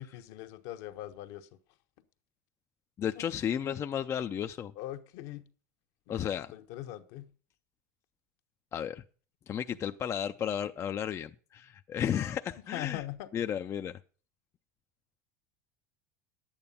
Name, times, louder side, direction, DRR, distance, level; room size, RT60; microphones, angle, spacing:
voice 1, 0.0-1.5 3.1-3.3 4.8-5.4 6.1-7.3 12.7-13.3, left 14 dB, 65° left, 1.1 m, -41 dB
voice 2, 3.0-4.7 6.1-6.5 8.7-9.0 9.5-13.0 13.3-14.0, left 9 dB, 30° left, 0.5 m, -33 dB
11.0 x 8.9 x 5.5 m
supercardioid pair, 115°, 9 cm